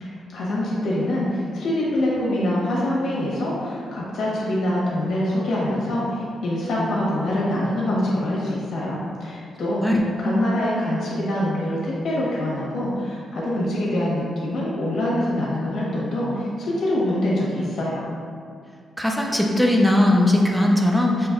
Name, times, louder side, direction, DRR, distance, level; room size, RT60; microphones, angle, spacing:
voice 1, 0.0-9.8 10.2-18.0, left 1 dB, 70° left, -6 dB, 1.2 m, -25 dB
voice 2, 19.0-21.3, left 1 dB, ahead, -1 dB, 0.4 m, -19 dB
5.9 x 3.0 x 2.5 m, 2.2 s
wide cardioid pair, 145°, 0 cm